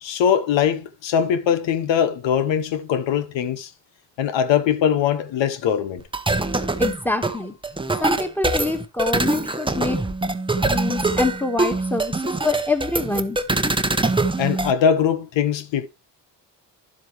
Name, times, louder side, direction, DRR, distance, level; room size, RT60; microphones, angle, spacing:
voice 1, 0.0-3.7 4.2-6.0 14.4-15.9, left 8 dB, 80° left, 0.9 m, -21 dB
sound 1, 6.0-14.7, right 2 dB, 10° right, 0.8 m, -23 dB
voice 2, 6.8-7.5 8.0-10.0 10.6-13.4, left 2 dB, 5° left, 1.7 m, -25 dB
10.5 x 7.6 x 3.3 m
cardioid pair, 75°, 44 cm